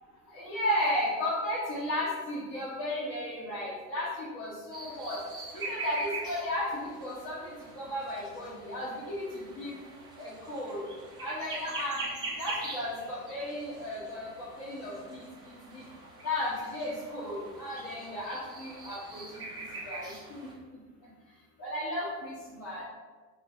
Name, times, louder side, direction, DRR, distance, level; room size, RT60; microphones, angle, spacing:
voice 1, 0.3-4.1 4.3-5.2 5.5-7.4 7.8-9.2 9.6-9.7 10.2-10.8 11.2-12.0 12.4-15.2 15.7-15.8 16.2-19.4 19.9-20.1 21.6-22.8, left 1 dB, 40° left, -7 dB, 1.1 m, -34 dB
sound 1, 4.7-20.5, right 2 dB, 10° right, 0.3 m, -43 dB
3.8 x 2.3 x 3.7 m, 1.4 s
figure-of-eight pair, 80°, 48 cm